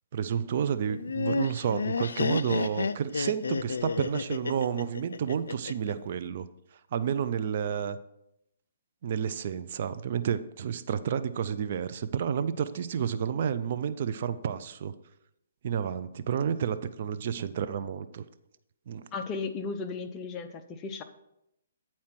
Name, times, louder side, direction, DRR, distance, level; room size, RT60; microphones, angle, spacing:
voice 1, 0.1-6.5 6.9-8.0 9.0-14.9 15.6-18.2 18.9-19.1, right 8 dB, 50° right, 11 dB, 0.5 m, -30 dB
Laughter, 0.9-5.9, left 4 dB, 85° left, 0.4 m, -31 dB
voice 2, 19.1-21.0, left 4 dB, 20° left, 5 dB, 0.7 m, -35 dB
8.8 x 4.3 x 5.9 m, 0.82 s
hypercardioid pair, 150°, 0 cm